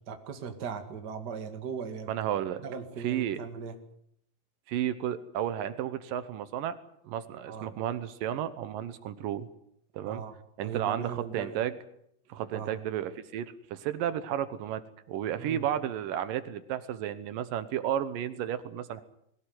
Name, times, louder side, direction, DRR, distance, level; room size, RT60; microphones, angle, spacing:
voice 1, 0.1-2.1 2.6-3.8 7.5-7.7 10.0-10.3 10.6-11.6 12.5-12.7 15.3-15.7, right 6 dB, 35° right, 7 dB, 2.1 m, -38 dB
voice 2, 2.1-2.6 3.0-3.4 4.7-6.8 7.0-9.5 9.9-10.2 10.6-11.7 12.3-14.8 15.1-19.0, right 10 dB, 80° right, 13 dB, 2.8 m, -32 dB
21.5 x 16.5 x 9.5 m, 0.71 s
omnidirectional pair, 3.9 m